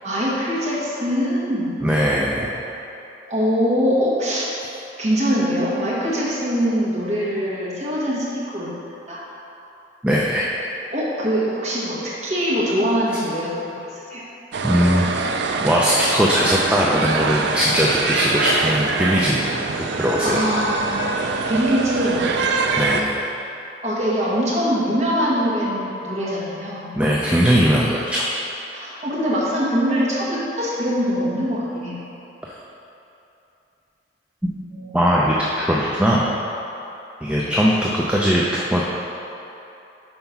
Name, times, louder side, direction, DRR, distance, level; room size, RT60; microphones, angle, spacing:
voice 1, 0.0-1.7 3.3-4.5 5.0-8.7 9.1-9.2 10.9-14.2 20.2-22.3 22.5-22.7 23.8-26.9 28.7-32.0 34.7-35.1 37.4-37.6, equal, 40° right, -7 dB, 1.5 m, -23 dB
voice 2, 1.8-2.5 10.0-10.4 14.6-15.0 15.6-19.5 19.8-20.4 22.8-23.3 26.9-28.3 32.4-32.6 34.4-34.5 34.9-36.3 37.2-38.8, equal, 5° right, -5 dB, 0.4 m, -19 dB
sound 1, 14.5-23.0, right 4 dB, 70° right, 0.4 m, -24 dB
5.6 x 4.5 x 5.8 m, 2.9 s
head